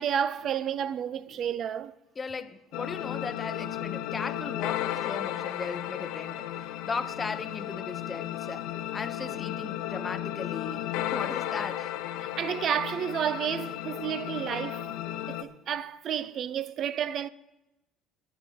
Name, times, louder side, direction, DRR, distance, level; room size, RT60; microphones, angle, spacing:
voice 1, 0.0-1.9 12.4-14.9 15.3-17.3, right 9 dB, 50° right, 0.5 m, -31 dB
voice 2, 2.2-11.9, left 4 dB, 25° left, 0.8 m, -37 dB
sound 1, 2.7-15.4, left 12 dB, 75° left, 0.8 m, -34 dB
24.0 x 10.0 x 2.8 m
cardioid pair, 110°, 0 cm